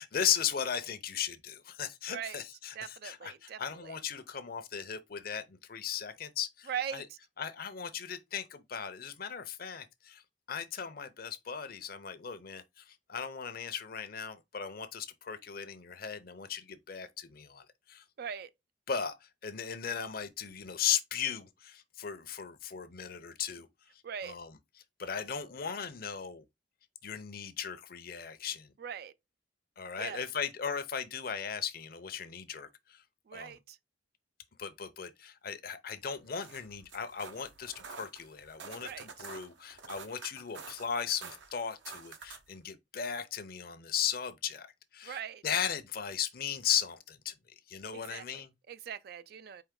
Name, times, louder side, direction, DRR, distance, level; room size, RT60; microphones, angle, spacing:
voice 1, 0.0-7.1 7.4-10.2 10.5-18.0 18.9-23.7 23.9-24.6 25.0-26.4 27.0-28.7 29.8-33.0 33.3-33.6 34.6-44.7 44.9-47.3 47.7-48.5, left 8 dB, 50° left, 0.6 m, -37 dB
voice 2, 2.1-2.4 2.7-4.0 6.7-7.2 18.2-18.5 24.0-24.3 28.8-29.1 30.0-30.3 33.3-33.8 38.8-39.3 45.0-45.4 47.9-49.6, right 8 dB, 55° right, 0.3 m, -41 dB
sound 1, 36.2-42.6, right 5 dB, 75° right, 0.9 m, -49 dB
4.6 x 3.0 x 3.7 m
head